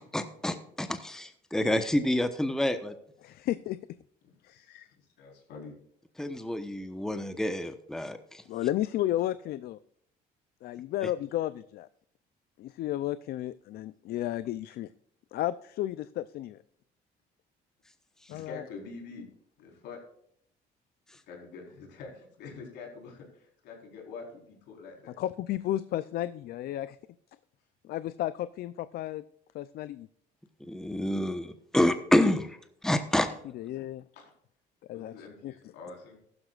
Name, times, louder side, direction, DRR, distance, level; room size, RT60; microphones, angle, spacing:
voice 1, 0.1-2.9 6.2-8.4 11.0-11.1 30.7-32.6 32.8-33.3, left 1 dB, 5° left, 8 dB, 1.0 m, -28 dB
voice 2, 3.2-3.8 4.4-4.9 8.5-9.8 10.6-11.9 12.6-14.9 15.3-16.6 18.3-18.6 25.2-27.0 27.9-29.2 29.5-30.1 33.5-34.0 34.9-35.1 35.4-35.5, left 13 dB, 65° left, 15 dB, 0.5 m, -33 dB
voice 3, 4.2-5.8 18.3-19.3 19.6-20.0 21.3-25.1 34.1-34.2 34.9-36.2, left 4 dB, 85° left, 1 dB, 4.3 m, -46 dB
15.0 x 12.5 x 2.4 m, 0.68 s
cardioid pair, 110°, 17 cm